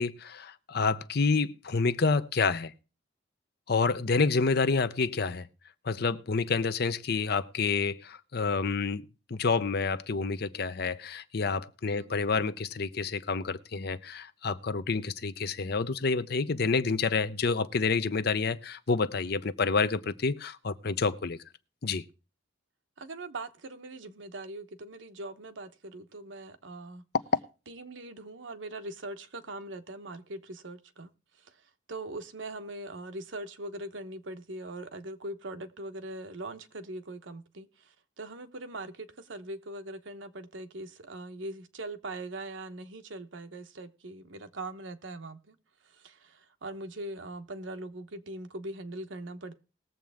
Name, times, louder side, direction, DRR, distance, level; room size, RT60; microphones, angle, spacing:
voice 1, 0.0-2.7 3.7-5.5 5.8-21.4 21.8-22.0, left 4 dB, 55° left, 0.6 m, -28 dB
voice 2, 23.0-27.0 27.7-31.1 31.4-45.6 45.8-49.5, right 2 dB, 70° right, 1.0 m, -41 dB
20.0 x 7.5 x 3.5 m
head